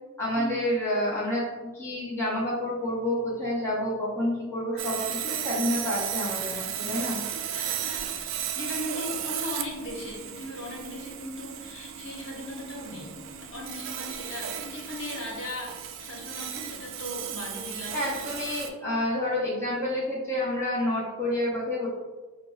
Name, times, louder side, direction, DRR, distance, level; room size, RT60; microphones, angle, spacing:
voice 1, 0.2-1.4 1.7-7.2 17.9-21.9, left 1 dB, 15° left, -8 dB, 0.7 m, -29 dB
Sawing, 4.8-18.7, right 9 dB, 70° right, 0.3 m, -35 dB
voice 2, 7.5-13.2 13.5-18.1, left 1 dB, 65° left, -3 dB, 1.0 m, -38 dB
5.7 x 2.1 x 2.2 m, 1.3 s
head